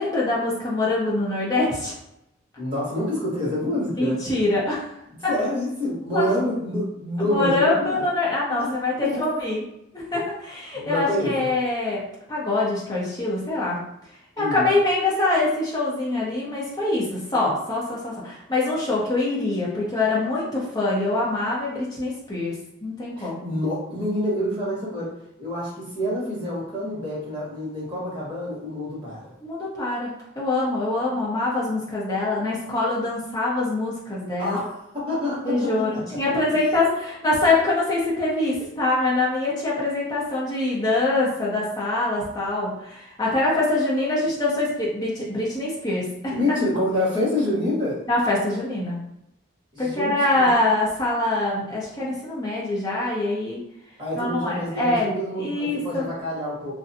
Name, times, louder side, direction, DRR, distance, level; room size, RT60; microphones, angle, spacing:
voice 1, 0.0-1.9 4.0-5.0 5.2-5.3 6.1-6.3 7.2-9.6 9.9-12.0 12.3-13.8 14.4-22.5 22.8-23.5 29.4-34.6 35.4-46.3 48.1-49.0 49.8-53.6 54.2-56.1, left 2 dB, 20° left, -6 dB, 0.7 m, -24 dB
voice 2, 2.6-4.2 5.3-8.1 8.6-8.8 9.0-9.2 10.7-11.5 14.4-14.7 23.2-29.3 34.4-36.2 36.5-36.6 46.4-48.0 49.7-50.6 54.0-56.7, left 1 dB, 25° right, -9 dB, 1.1 m, -27 dB
2.6 x 2.2 x 2.6 m, 0.83 s
head